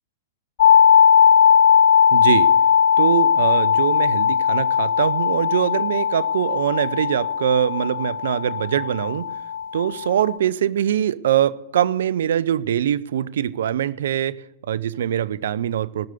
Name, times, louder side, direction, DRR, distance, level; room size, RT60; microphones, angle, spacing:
sound 1, 0.6-10.4, left 8 dB, 65° left, 0.7 m, -18 dB
voice 1, 2.1-2.5 3.0-9.3 9.7-16.1, right 10 dB, 70° right, 18 dB, 0.7 m, -23 dB
18.5 x 6.6 x 8.3 m, 0.87 s
hypercardioid pair, 115°, 0 cm